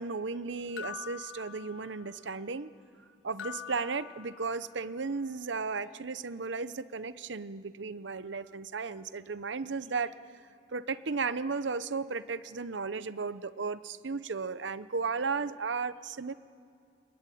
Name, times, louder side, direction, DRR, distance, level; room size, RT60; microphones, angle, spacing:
voice 1, 0.0-2.7 3.2-10.1 10.7-16.3, right 4 dB, 70° right, 14 dB, 0.8 m, -35 dB
sound 1, 0.8-2.2 3.4-4.8, left 9 dB, 85° left, 0.5 m, -44 dB
28.5 x 21.5 x 9.2 m, 2.4 s
head